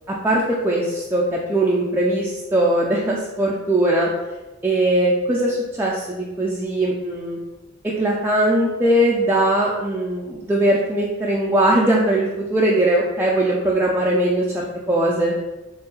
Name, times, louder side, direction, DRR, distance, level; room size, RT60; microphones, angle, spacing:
voice 1, 0.1-4.1 4.6-7.4 7.8-15.3, right 1 dB, 10° right, -4 dB, 0.6 m, -20 dB
4.5 x 3.8 x 5.5 m, 1.1 s
head